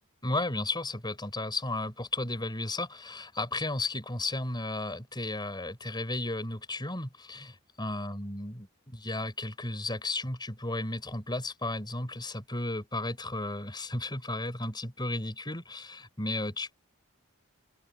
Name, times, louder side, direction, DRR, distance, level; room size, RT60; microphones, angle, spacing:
voice 1, 0.2-7.5 7.8-16.7, left 2 dB, 20° left, 5.1 m, -34 dB
open air
head